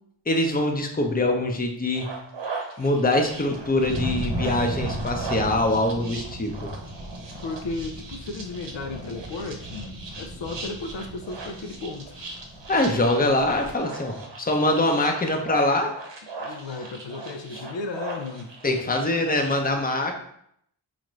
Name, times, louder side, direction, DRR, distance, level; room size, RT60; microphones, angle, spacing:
voice 1, 0.3-2.1 2.8-6.5 12.7-15.9 18.6-20.1, left 1 dB, 20° left, 3 dB, 0.7 m, -23 dB
sound 1, 1.9-19.5, right 3 dB, 65° right, 0.9 m, -39 dB
Thunder, 3.2-13.8, equal, 30° right, 0.9 m, -36 dB
voice 2, 7.4-12.4 16.4-18.6 19.6-19.8, left 3 dB, 65° left, 4 dB, 0.6 m, -35 dB
4.2 x 2.6 x 3.1 m, 0.70 s
cardioid pair, 45°, 46 cm